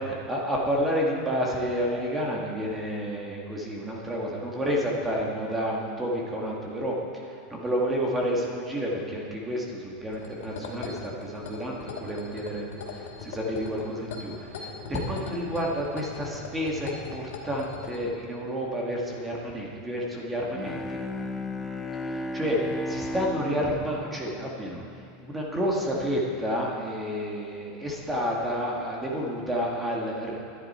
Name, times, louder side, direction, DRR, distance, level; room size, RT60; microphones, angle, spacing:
voice 1, 0.1-21.0 22.0-22.6 22.9-24.8 25.2-30.4, equal, 10° right, -3 dB, 2.0 m, -30 dB
sound 1, 10.1-18.0, left 4 dB, 75° left, 2.7 m, -39 dB
Bowed string instrument, 20.5-25.4, left 1 dB, 10° left, 0.7 m, -35 dB
19.5 x 11.0 x 4.5 m, 2.4 s
supercardioid pair, 150°, 0 cm